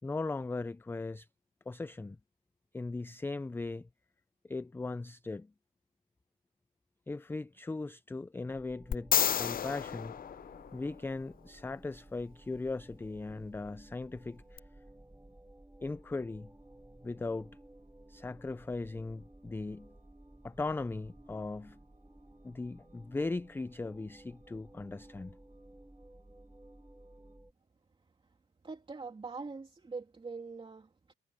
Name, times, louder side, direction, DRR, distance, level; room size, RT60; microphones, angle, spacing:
voice 1, 0.0-1.3 1.7-2.2 2.7-3.9 4.4-5.5 7.1-10.2 10.7-14.6 15.8-16.5 17.0-17.5 18.1-19.9 20.4-21.8 22.4-25.4, left 3 dB, 10° left, 0.4 m, -38 dB
sound 1, 8.5-27.5, right 1 dB, 10° right, 7.6 m, -56 dB
sound 2, 8.9-11.2 14.6-14.7, left 9 dB, 45° left, 0.7 m, -31 dB
sound 3, 10.6-27.4, right 5 dB, 40° right, 7.4 m, -73 dB
voice 2, 28.6-31.1, right 4 dB, 25° right, 2.6 m, -43 dB
cardioid pair, 90°, 20 cm